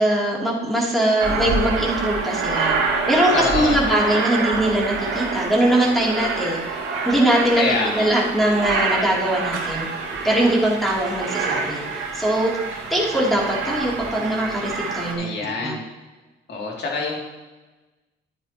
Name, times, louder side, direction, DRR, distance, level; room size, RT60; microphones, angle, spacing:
voice 1, 0.0-2.7 3.1-6.6 7.0-7.6 8.0-9.9 10.2-11.8 12.1-12.5 12.9-15.8, right 1 dB, ahead, -4 dB, 3.2 m, -21 dB
Aircraft, 1.2-15.1, right 4 dB, 80° right, 2.4 m, -26 dB
voice 2, 3.3-4.2 7.5-8.1 15.2-15.8 16.5-17.2, left 3 dB, 60° left, -1 dB, 2.9 m, -25 dB
11.5 x 9.4 x 3.1 m, 1.2 s
cardioid pair, 90°, 20 cm